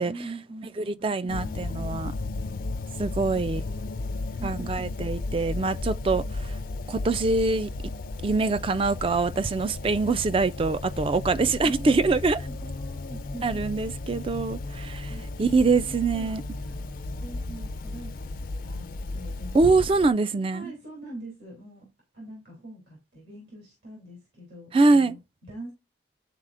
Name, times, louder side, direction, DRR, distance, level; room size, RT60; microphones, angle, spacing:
voice 1, 0.0-2.7 3.1-4.9 11.6-13.8 15.1-18.9 19.1-19.7 20.5-21.9 22.1-25.7, right 1 dB, 65° right, 2.8 m, -44 dB
voice 2, 0.8-2.1 3.0-3.6 4.4-6.6 6.9-7.7 8.2-12.4 13.4-16.4 19.5-20.7 24.7-25.2, right 3 dB, 30° right, 0.3 m, -24 dB
sound 1, 1.3-20.1, left 2 dB, 50° left, 0.4 m, -34 dB
9.9 x 4.1 x 2.5 m
head